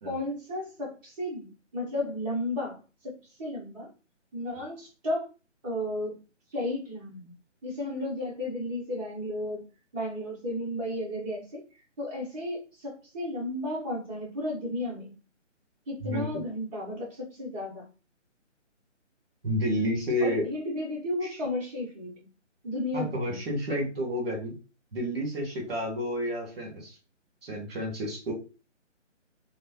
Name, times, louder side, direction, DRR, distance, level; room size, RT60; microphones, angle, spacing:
voice 1, 0.0-3.9 4.3-5.3 5.6-6.2 6.5-7.3 7.6-9.6 9.9-11.7 12.0-15.1 15.9-17.9 20.2-22.1 22.6-23.4, left 1 dB, 30° right, -8 dB, 1.1 m, -33 dB
voice 2, 19.4-20.4 22.9-24.5 24.9-26.9 27.4-28.3, equal, 55° right, 0 dB, 1.5 m, -30 dB
3.2 x 2.1 x 2.3 m, 0.32 s
figure-of-eight pair, 160°, 37 cm